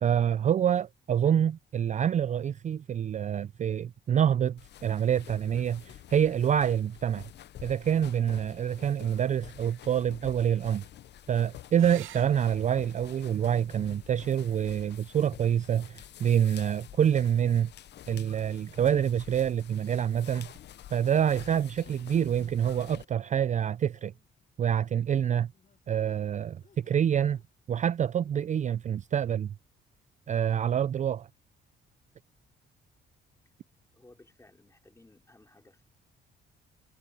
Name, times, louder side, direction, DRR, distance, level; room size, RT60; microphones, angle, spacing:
voice 1, 0.0-7.2 7.6-10.8 11.3-17.7 18.1-20.5 20.9-24.1 24.6-25.5 25.9-27.4 27.7-29.5 30.3-31.3, right 9 dB, 40° right, 0.4 m, -27 dB
sound 1, 4.6-23.1, left 12 dB, 60° left, 0.6 m, -49 dB
sound 2, 11.7-16.8 18.7-19.3 22.7-22.9 23.2-23.3, right 14 dB, 85° right, 0.9 m, -54 dB
sound 3, 12.1-12.3 12.9-13.5 14.0-14.5 15.0-15.3 15.8-16.1 16.6-17.0 17.6-17.7 18.0-18.2 18.6-18.7 19.1-19.5 19.8-20.0 20.7-20.9 21.5-22.0 22.5-22.9 23.6-24.3 24.8-26.3 26.6-27.0 27.3-27.9 28.2-28.4, left 6 dB, 40° left, 6.2 m, -67 dB
voice 2, 33.9-35.8, left 2 dB, 15° left, 4.9 m, -58 dB
cardioid pair, 90°, 20 cm